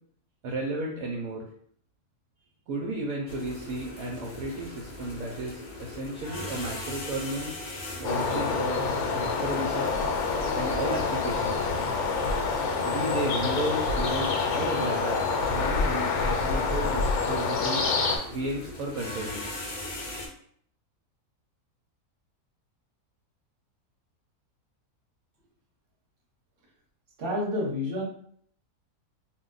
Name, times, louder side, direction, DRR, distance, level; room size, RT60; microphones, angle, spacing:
voice 1, 0.4-1.4 2.7-7.5 7.9-10.0 10.5-11.8 12.8-15.2 15.5-17.8 18.3-19.6, right 1 dB, 70° right, -2 dB, 1.0 m, -33 dB
sound 1, 3.3-20.3, left 2 dB, 50° left, 0.6 m, -41 dB
sound 2, 8.0-18.2, left 4 dB, 75° left, 1.0 m, -27 dB
voice 2, 27.2-28.0, left 1 dB, 45° right, -2 dB, 1.0 m, -29 dB
2.5 x 2.1 x 3.7 m, 0.62 s
omnidirectional pair, 1.6 m